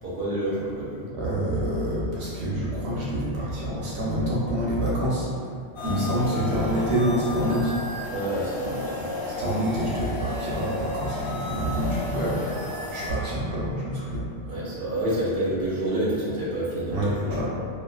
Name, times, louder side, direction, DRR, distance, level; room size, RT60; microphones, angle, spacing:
voice 1, 0.0-1.0 8.1-9.1 14.5-17.2, right 1 dB, 55° right, -8 dB, 0.9 m, -28 dB
voice 2, 1.1-5.3 5.8-7.7 9.4-12.5 12.9-14.3 16.9-17.5, equal, 85° right, -7 dB, 0.9 m, -26 dB
sound 1, 5.7-13.1, left 2 dB, 80° left, 1.1 m, -33 dB
2.4 x 2.4 x 2.2 m, 2.2 s
omnidirectional pair, 1.1 m